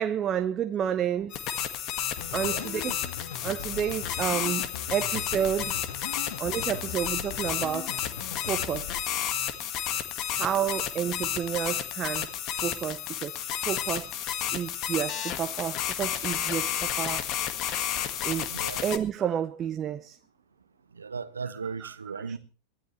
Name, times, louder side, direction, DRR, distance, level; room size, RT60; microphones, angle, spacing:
voice 1, 0.0-1.4 2.3-3.0 3.4-5.7 6.4-7.9 8.4-9.1 10.4-12.3 12.6-14.1 14.5-17.2 18.2-18.5 18.8-20.2 21.8-22.4, right 9 dB, 25° right, 0.7 m, -30 dB
sound 1, 1.3-19.0, left 10 dB, 35° left, 1.8 m, -32 dB
sound 2, 2.2-9.0, left 8 dB, 55° left, 1.7 m, -40 dB
voice 2, 2.3-2.7 18.5-18.9 21.0-22.4, right 5 dB, 75° right, 1.0 m, -36 dB
23.0 x 15.0 x 3.2 m
figure-of-eight pair, 90°, 0 cm